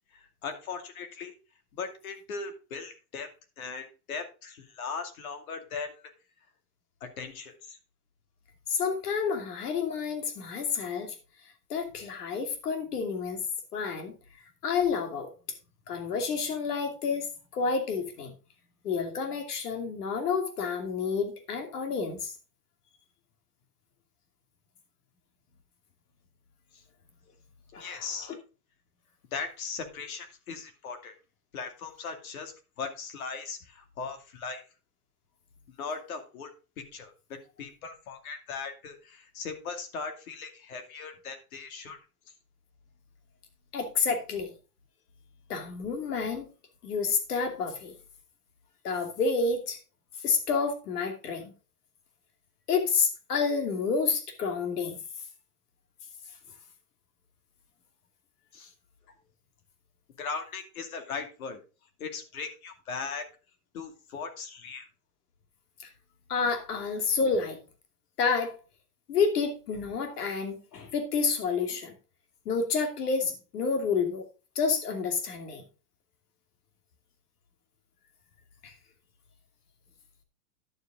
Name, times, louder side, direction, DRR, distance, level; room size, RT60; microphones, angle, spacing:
voice 1, 0.1-1.3 1.7-3.3 3.6-5.9 7.0-7.8 27.8-28.3 29.3-31.1 31.5-32.5 32.8-34.6 35.8-36.5 36.9-42.0 58.5-58.7 60.2-61.6 62.0-63.2 63.7-64.8, left 5 dB, 65° left, 6 dB, 2.5 m, -38 dB
voice 2, 8.7-11.1 11.7-13.4 13.7-14.1 14.6-15.3 15.9-18.3 18.8-22.3 27.7-28.3 43.7-44.5 45.5-46.5 46.8-47.9 48.8-49.8 50.2-51.5 52.7-55.0 65.8-65.9 66.3-67.6 68.2-68.5 69.1-71.9 72.5-74.2 74.5-75.6 78.6-78.7, left 5 dB, 90° left, 5 dB, 2.7 m, -29 dB
11.0 x 7.7 x 3.8 m, 0.32 s
supercardioid pair, 180°, 45 cm